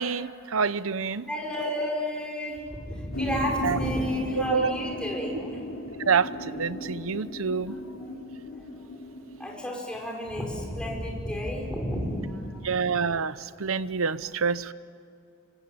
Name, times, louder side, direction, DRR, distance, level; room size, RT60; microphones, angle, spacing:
voice 1, 0.0-1.3 3.6-3.8 4.4-4.7 6.1-7.8 12.6-14.7, right 5 dB, 85° right, 15 dB, 0.8 m, -27 dB
voice 2, 1.3-5.6 7.7-7.8 9.4-12.6, equal, 5° left, -1 dB, 5.6 m, -31 dB
sound 1, 3.1-9.7, left 1 dB, 80° left, 3.3 m, -36 dB
26.5 x 24.0 x 9.1 m, 2.5 s
head